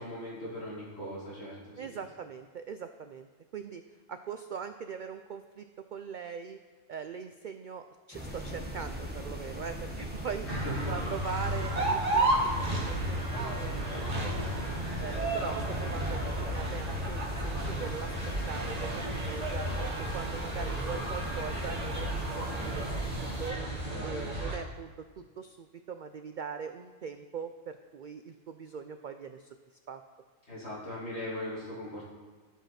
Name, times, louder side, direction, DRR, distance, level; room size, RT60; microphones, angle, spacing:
voice 1, 0.0-1.9 10.4-11.1 23.9-24.3 30.5-32.1, equal, 55° left, -7 dB, 3.0 m, -39 dB
voice 2, 1.8-3.8 4.1-5.6 5.9-6.6 6.9-14.6 15.0-18.2 18.5-19.7 20.1-23.6 24.0-29.5 29.9-30.0, right 6 dB, 85° right, 8 dB, 0.4 m, -41 dB
sound 1, 8.1-23.5, equal, 10° right, 1.3 m, -40 dB
sound 2, 10.5-24.6, right 1 dB, 30° right, 1.5 m, -33 dB
12.0 x 5.5 x 5.8 m, 1.5 s
omnidirectional pair, 1.4 m